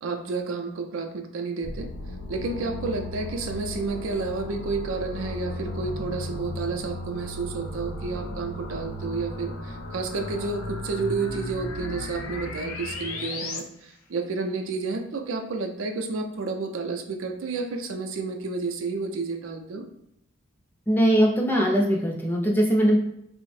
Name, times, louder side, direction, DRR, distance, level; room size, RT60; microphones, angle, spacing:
voice 1, 0.0-1.9 2.3-19.8, right 4 dB, 70° right, 4 dB, 0.4 m, -30 dB
sound 1, 1.6-13.6, left 1 dB, 90° left, 0.5 m, -35 dB
voice 2, 20.9-23.0, equal, 10° left, -2 dB, 0.4 m, -21 dB
3.5 x 2.0 x 3.1 m, 0.76 s
head